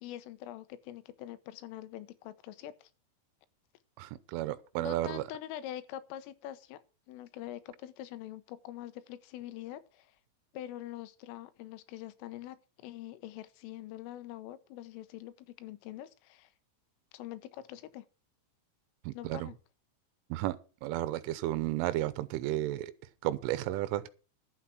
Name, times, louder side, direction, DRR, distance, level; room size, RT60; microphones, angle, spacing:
voice 1, 0.0-2.9 4.8-6.8 7.1-10.1 10.5-16.5 17.1-18.1 19.1-19.6, left 13 dB, 90° left, 3.6 m, -44 dB
voice 2, 4.0-5.2 19.1-19.5 20.3-20.6 20.8-22.9 23.2-24.1, right 15 dB, 85° right, 3.3 m, -33 dB
11.5 x 8.2 x 6.3 m
omnidirectional pair, 5.7 m